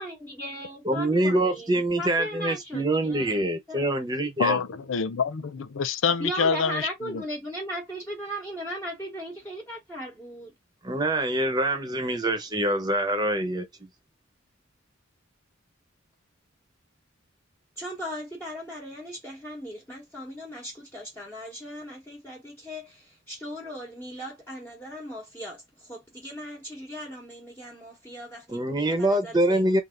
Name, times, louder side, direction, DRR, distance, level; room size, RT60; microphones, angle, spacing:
voice 1, 0.0-3.9 6.2-10.5 17.8-29.8, equal, 10° left, 1.3 m, -38 dB
voice 2, 0.8-4.6 10.8-13.7 28.5-29.8, right 1 dB, 20° right, 1.0 m, -25 dB
voice 3, 4.4-7.2, left 5 dB, 80° left, 0.5 m, -26 dB
3.5 x 2.7 x 3.8 m
head